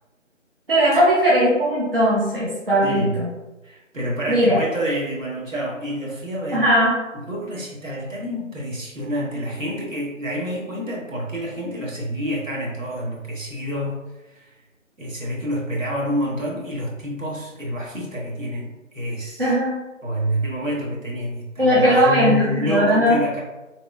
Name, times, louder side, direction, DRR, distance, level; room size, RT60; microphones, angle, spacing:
voice 1, 0.7-3.3 4.3-4.6 6.5-6.9 19.4-19.8 21.6-23.2, equal, 45° right, -7 dB, 0.6 m, -18 dB
voice 2, 2.8-3.2 3.6-6.7 7.1-14.0 14.3-14.5 15.0-19.5 20.0-23.4, equal, 75° right, -4 dB, 1.0 m, -28 dB
2.9 x 2.0 x 2.3 m, 1.1 s
figure-of-eight pair, 165°, 39 cm